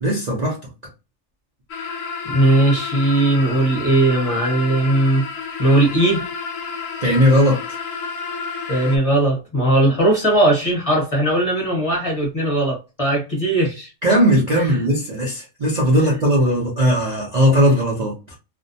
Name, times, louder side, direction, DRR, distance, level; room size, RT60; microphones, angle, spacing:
voice 1, 0.0-0.6 7.0-7.7 14.0-18.4, equal, 45° right, 0.6 m, -18 dB
sound 1, 1.7-9.0, left 5 dB, 75° left, 0.9 m, -30 dB
voice 2, 2.2-5.2 5.6-6.3 8.7-13.9 14.6-14.7, right 1 dB, 30° left, 1.0 m, -18 dB
2.6 x 2.0 x 2.6 m
omnidirectional pair, 1.4 m